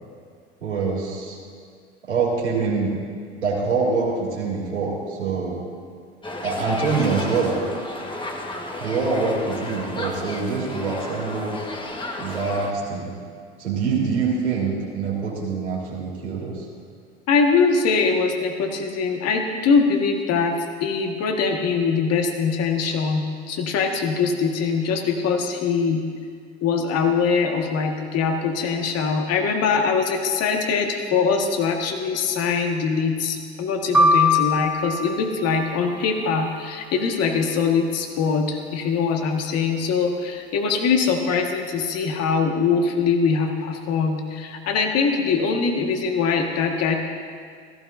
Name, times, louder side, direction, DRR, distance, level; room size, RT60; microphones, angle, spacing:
voice 1, 0.6-1.4 2.1-2.9 3.4-5.6 6.4-7.6 8.8-11.7 12.2-13.1 13.6-16.6, right 4 dB, 90° right, -4 dB, 3.2 m, -25 dB
sound 1, 6.2-12.7, left 1 dB, 15° left, 1.6 m, -33 dB
voice 2, 17.3-26.0 26.6-46.9, left 5 dB, 50° left, 3 dB, 1.8 m, -22 dB
sound 2, 33.9-36.1, left 2 dB, 5° right, 1.0 m, -21 dB
16.5 x 15.0 x 2.7 m, 2.1 s
hypercardioid pair, 70°, 33 cm